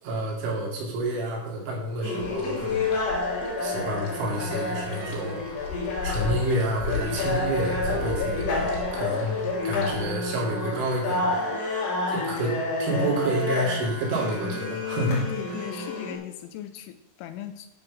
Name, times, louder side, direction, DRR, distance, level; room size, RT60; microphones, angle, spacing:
voice 1, 0.0-2.8 3.6-5.6 6.0-9.4 9.6-11.4 12.1-15.2 15.5-15.7, right 1 dB, 70° right, -3 dB, 5.0 m, -29 dB
sound 1, 2.0-16.1, left 2 dB, 40° left, 2.6 m, -29 dB
sound 2, 2.2-10.0, left 6 dB, 60° left, 4.7 m, -37 dB
sound 3, 3.2-8.9, right 4 dB, 50° right, 3.1 m, -46 dB
voice 2, 15.1-17.7, left 11 dB, 85° left, 10 dB, 2.9 m, -38 dB
11.0 x 6.2 x 6.1 m, 0.94 s
omnidirectional pair, 5.7 m